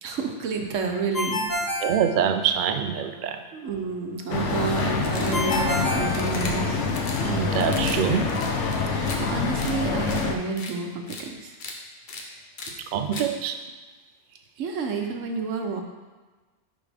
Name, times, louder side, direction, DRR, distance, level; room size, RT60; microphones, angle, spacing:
voice 1, 0.0-1.7 3.5-6.8 8.9-11.5 14.6-15.8, right 4 dB, 90° right, 3 dB, 1.1 m, -30 dB
Ringtone, 1.1-2.8 5.3-6.9, left 1 dB, 30° left, 0.3 m, -29 dB
voice 2, 1.8-3.4 7.2-8.3 12.9-13.6, right 8 dB, 60° right, 7 dB, 0.5 m, -25 dB
sound 1, 4.3-10.3, left 4 dB, 75° left, 1.0 m, -26 dB
sound 2, 5.0-5.7 6.1-6.5 6.9-7.2 7.6-8.0 8.2-9.2 9.5-9.7 10.1-10.2 10.6-10.7 11.1-11.2 11.5-11.7 12.1-12.2 12.6-12.7 13.1-13.3, left 3 dB, 45° left, 0.8 m, -37 dB
10.0 x 3.5 x 3.4 m, 1.3 s
omnidirectional pair, 1.3 m